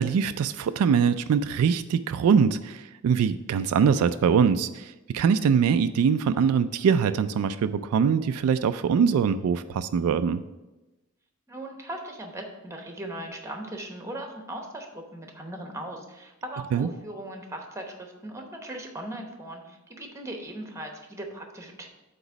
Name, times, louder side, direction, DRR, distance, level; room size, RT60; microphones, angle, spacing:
voice 1, 0.0-10.4 16.7-16.9, right 6 dB, 85° right, 11 dB, 0.3 m, -23 dB
voice 2, 11.5-21.9, right 1 dB, 15° right, 3 dB, 0.9 m, -38 dB
8.0 x 3.0 x 6.0 m, 1.0 s
head